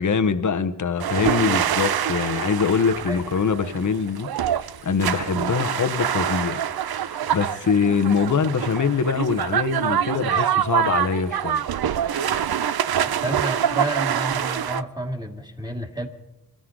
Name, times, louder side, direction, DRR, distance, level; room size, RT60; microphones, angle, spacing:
voice 1, 0.0-4.3 4.6-6.7 7.0-11.6, left 6 dB, 50° left, 1.1 m, -23 dB
sound 1, 1.0-14.8, right 9 dB, 65° right, 0.6 m, -25 dB
voice 2, 13.0-16.1, right 1 dB, 10° right, 2.2 m, -30 dB
26.5 x 13.5 x 3.8 m
cardioid pair, 70°, 40 cm